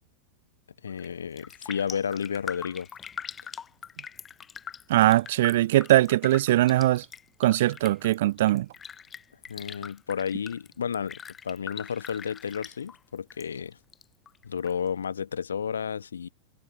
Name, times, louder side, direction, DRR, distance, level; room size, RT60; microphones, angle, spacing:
voice 1, 0.8-2.9 9.5-11.2 11.4-13.8 14.4-16.3, left 7 dB, 70° left, 1.2 m, -32 dB
Raindrop, 0.9-1.1 1.4-13.4 13.7-14.7 15.1-15.2, left 7 dB, 20° left, 0.7 m, -42 dB
voice 2, 4.9-7.0 7.4-8.7, right 15 dB, 55° right, 0.3 m, -21 dB
figure-of-eight pair, 90°, 0 cm